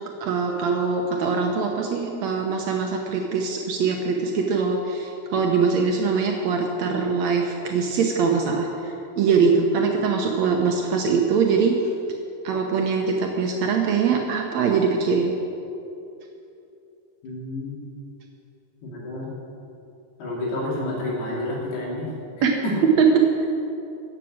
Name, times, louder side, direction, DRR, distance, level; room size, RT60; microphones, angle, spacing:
voice 1, 0.2-11.8 12.4-15.3 22.4-22.5 22.8-23.2, right 5 dB, 85° right, 1 dB, 1.5 m, -22 dB
voice 2, 17.2-17.7 18.8-19.3 20.2-22.1 22.6-22.8, left 1 dB, 75° left, -6 dB, 4.8 m, -29 dB
15.0 x 7.4 x 8.6 m, 2.7 s
omnidirectional pair, 4.6 m